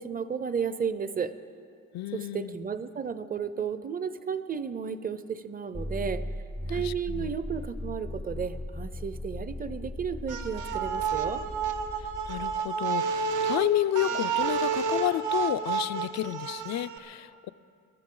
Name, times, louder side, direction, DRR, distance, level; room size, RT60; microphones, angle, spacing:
voice 1, 0.0-1.4 2.1-6.2 6.7-11.4, right 6 dB, 30° right, 13 dB, 0.7 m, -33 dB
voice 2, 1.9-2.6 6.7-7.3 12.0-17.5, left 13 dB, 65° left, 15 dB, 0.5 m, -31 dB
sound 1, 5.7-12.6, left 1 dB, 5° left, 0.4 m, -38 dB
sound 2, 10.3-17.0, right 6 dB, 80° right, 1.1 m, -30 dB
23.0 x 13.0 x 3.9 m, 2.4 s
cardioid pair, 90°, 30 cm